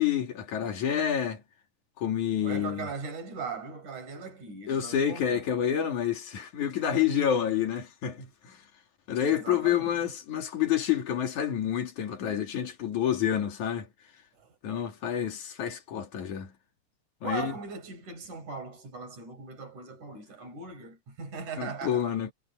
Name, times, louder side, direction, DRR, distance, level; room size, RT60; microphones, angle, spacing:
voice 1, 0.0-1.4 2.0-2.9 4.7-8.6 9.1-13.9 14.6-16.5 17.2-17.6 21.6-22.3, left 9 dB, 80° left, 3.9 m, -28 dB
voice 2, 2.4-5.4 9.3-10.0 14.4-14.6 17.2-22.0, right 4 dB, 90° right, 6.7 m, -39 dB
omnidirectional pair, 3.3 m